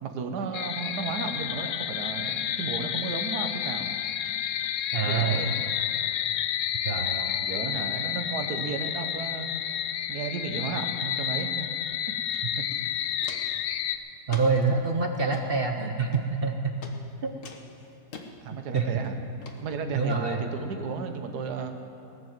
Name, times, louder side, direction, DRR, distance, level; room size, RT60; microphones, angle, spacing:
voice 1, 0.0-3.9 5.0-5.6 7.4-9.5 10.1-11.7 12.6-12.7 18.4-19.1 19.6-21.7, right 5 dB, 70° right, 7 dB, 1.6 m, -33 dB
sound 1, 0.5-14.0, left 10 dB, 70° left, 1.0 m, -30 dB
voice 2, 4.9-5.4 6.8-7.4 14.3-16.7 17.2-17.3 18.7-18.9 19.9-20.4, right 4 dB, 50° right, 4 dB, 0.7 m, -26 dB
Walk footsteps, 12.3-12.4 12.7-13.6 14.3-14.7 15.2-15.5 16.1-16.5 16.8-17.0 17.4-18.3 18.8-19.1 19.4-19.6 20.1-20.2, left 5 dB, 55° left, 1.4 m, -44 dB
18.5 x 7.9 x 7.5 m, 2.9 s
omnidirectional pair, 1.8 m